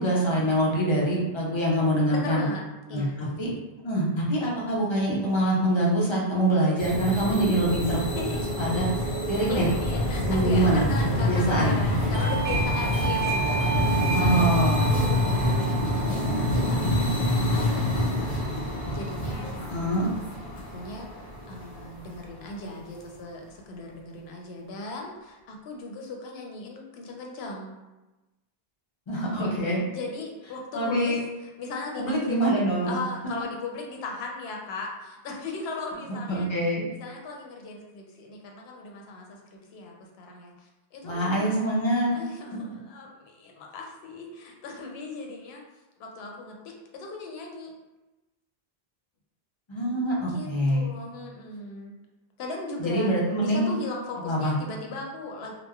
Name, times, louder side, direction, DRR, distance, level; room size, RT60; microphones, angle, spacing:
voice 1, 0.0-2.4 2.9-3.5 3.8-8.0 8.6-8.9 9.3-9.7 10.3-10.9 11.2-11.9 14.1-15.0 19.7-20.1 29.1-29.8 30.7-31.2 31.9-33.0 36.3-36.8 41.0-42.2 49.7-50.9 52.8-53.8 54.2-54.6, right 1 dB, 35° left, -5 dB, 0.5 m, -25 dB
voice 2, 2.1-2.6 2.9-3.1 8.1-8.4 9.0-9.1 9.5-14.6 14.9-20.0 20.6-27.7 29.9-31.2 31.6-32.4 32.9-36.5 36.9-41.5 42.1-45.6 46.0-47.7 50.2-51.9 52.4-53.1 53.4-55.5, left 3 dB, 80° left, 0 dB, 0.8 m, -38 dB
sound 1, 6.8-22.1, left 1 dB, 55° left, 1.1 m, -26 dB
Doorbell, 12.1-18.6, right 6 dB, 40° right, 0.4 m, -33 dB
3.0 x 2.0 x 2.3 m, 1.1 s
omnidirectional pair, 1.0 m